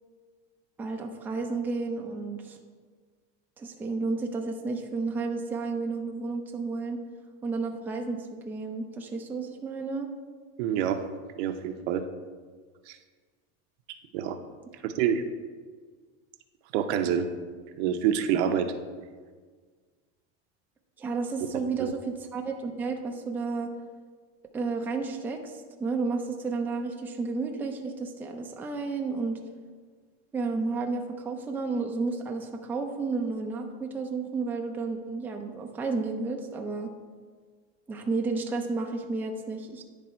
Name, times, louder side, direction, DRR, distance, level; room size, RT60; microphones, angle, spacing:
voice 1, 0.8-2.6 3.6-7.0 7.4-10.1 14.8-14.9 21.0-23.7 24.5-25.5 25.8-29.4 30.3-36.9 37.9-39.8, right 4 dB, 5° right, 2 dB, 0.4 m, -32 dB
voice 2, 10.6-11.0 11.4-12.0 12.9-13.0 14.1-14.4 14.8-15.2 16.7-17.3 17.8-18.7 21.8-21.9, right 9 dB, 70° right, 8 dB, 0.7 m, -26 dB
10.0 x 3.4 x 4.3 m, 1.5 s
supercardioid pair, 140°, 34 cm